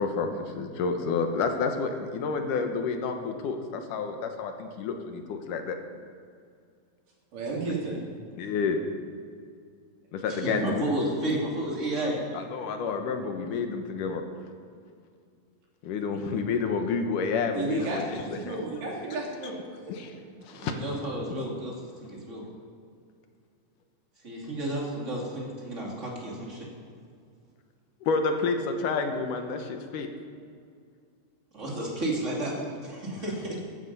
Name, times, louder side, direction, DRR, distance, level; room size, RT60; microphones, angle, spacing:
voice 1, 0.0-5.8 7.7-7.8 8.4-8.8 10.1-10.8 12.3-14.2 15.8-18.6 19.9-20.1 20.5-20.7 21.4-21.5 28.0-30.1 33.1-33.2, left 5 dB, 75° left, 5 dB, 2.6 m, -29 dB
voice 2, 7.3-8.0 17.5-19.6 19.8-20.1, right 3 dB, 80° right, -3 dB, 4.6 m, -33 dB
voice 3, 10.4-12.2 20.5-21.7 22.0-22.4 24.2-26.7 31.5-32.5 32.8-33.6, right 1 dB, 25° right, -3 dB, 2.8 m, -31 dB
15.0 x 12.5 x 5.5 m, 2.3 s
omnidirectional pair, 3.8 m